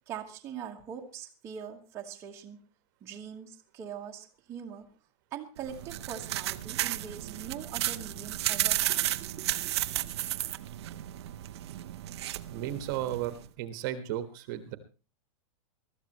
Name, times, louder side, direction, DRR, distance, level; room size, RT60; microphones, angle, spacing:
voice 1, 0.1-2.6 3.0-4.9 5.3-9.9, right 8 dB, 15° right, -1 dB, 1.3 m, -42 dB
sound 1, 5.6-13.5, right 14 dB, 50° right, 0.8 m, -33 dB
voice 2, 12.5-14.8, right 12 dB, 35° right, 10 dB, 1.4 m, -34 dB
23.0 x 13.5 x 3.0 m, 0.33 s
supercardioid pair, 175°, 18 cm